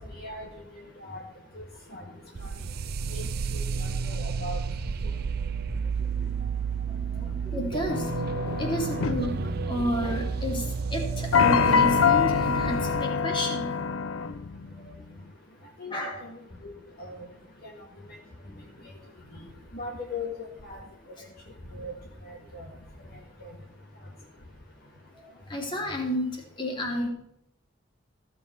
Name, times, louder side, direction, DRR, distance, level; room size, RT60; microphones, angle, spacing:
sound 1, 2.3-13.0, right 5 dB, 50° right, 0.4 m, -31 dB
voice 1, 3.5-4.6 15.8-15.9 16.6-16.7 17.0-17.2 17.6-17.8 19.3-19.5 19.7-20.8 21.7-21.9 22.3-22.7 23.4-23.5, left 2 dB, 50° left, 0 dB, 1.6 m, -38 dB
voice 2, 7.1-13.7 14.8-15.1 15.9-16.2 18.5-18.8 25.1-27.1, equal, 25° left, 1 dB, 2.4 m, -32 dB
sound 2, 7.9-10.3 11.3-15.0, left 6 dB, 90° left, 0.6 m, -25 dB
14.0 x 7.5 x 4.4 m, 0.77 s
head